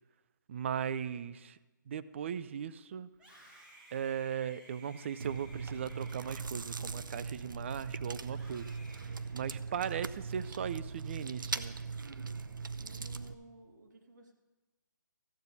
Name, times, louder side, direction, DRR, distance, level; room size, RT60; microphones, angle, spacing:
voice 1, 0.5-1.6 1.9-3.1 3.9-8.7 9.3-11.8, right 8 dB, 40° right, 15 dB, 0.4 m, -38 dB
Screaming, 3.1-7.6 8.2-10.0, right 1 dB, 10° right, 1.4 m, -58 dB
Chewing mastication, 5.2-13.3, right 4 dB, 85° right, 0.6 m, -40 dB
voice 2, 12.7-14.3, right 2 dB, 65° right, 2 dB, 2.0 m, -55 dB
14.5 x 8.5 x 4.1 m, 1.1 s
hypercardioid pair, 155°, 11 cm